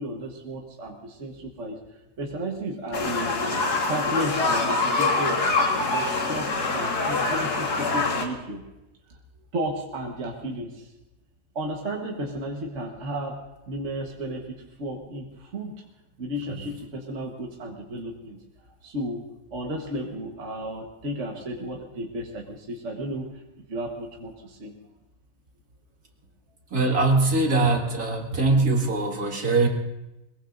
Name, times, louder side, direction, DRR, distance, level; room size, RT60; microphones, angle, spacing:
voice 1, 0.0-1.8 2.2-3.4 3.8-5.6 5.9-8.7 9.1-9.2 9.5-10.9 11.5-15.8 16.2-18.4 18.8-23.4 23.7-24.7, right 1 dB, 50° right, 0 dB, 1.6 m, -33 dB
sound 1, 2.9-8.3, left 3 dB, 75° left, 2.2 m, -25 dB
voice 2, 26.7-29.7, right 3 dB, 65° right, 1 dB, 2.5 m, -22 dB
22.5 x 21.5 x 2.6 m, 0.98 s
omnidirectional pair, 1.7 m